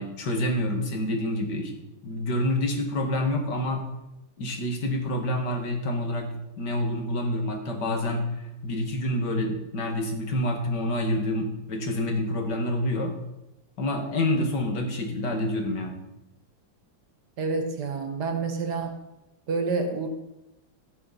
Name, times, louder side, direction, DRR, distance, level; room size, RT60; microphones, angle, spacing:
voice 1, 0.0-1.7 2.0-3.8 4.4-13.1 13.8-15.9, left 1 dB, 60° left, 2 dB, 2.3 m, -27 dB
voice 2, 17.4-19.0 19.5-20.1, right 4 dB, 55° right, 6 dB, 1.7 m, -28 dB
14.5 x 9.9 x 4.1 m, 0.92 s
omnidirectional pair, 2.2 m